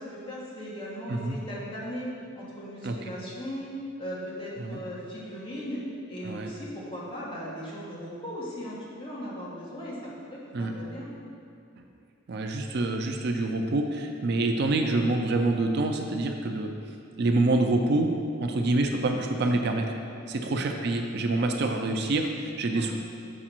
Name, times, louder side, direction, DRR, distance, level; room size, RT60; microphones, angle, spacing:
voice 1, 0.1-2.1 2.3-3.7 4.0-11.1 18.5-18.8 20.4-20.6 22.7-22.9, equal, 25° left, -7 dB, 1.5 m, -38 dB
voice 2, 12.3-16.7 17.2-18.1 18.4-19.9 20.3-22.9, right 2 dB, 55° right, 4 dB, 0.5 m, -26 dB
7.4 x 4.9 x 4.4 m, 2.4 s
head